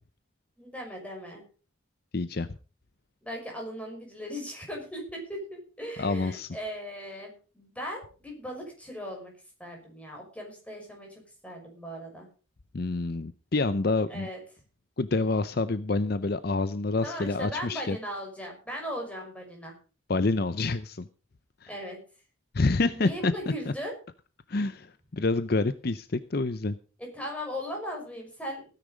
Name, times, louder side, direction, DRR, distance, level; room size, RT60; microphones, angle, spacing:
voice 1, 0.6-1.4 3.2-9.3 9.6-12.3 14.1-14.4 17.0-19.8 21.7-22.0 22.9-24.0 27.0-28.7, equal, 5° left, 1 dB, 5.8 m, -38 dB
voice 2, 2.1-2.6 6.0-6.5 12.7-14.3 15.0-18.0 20.1-21.1 21.6-21.7 22.5-23.3 23.7-23.8 24.5-26.8, left 3 dB, 50° left, 14 dB, 0.6 m, -27 dB
16.5 x 10.0 x 5.1 m, 0.37 s
head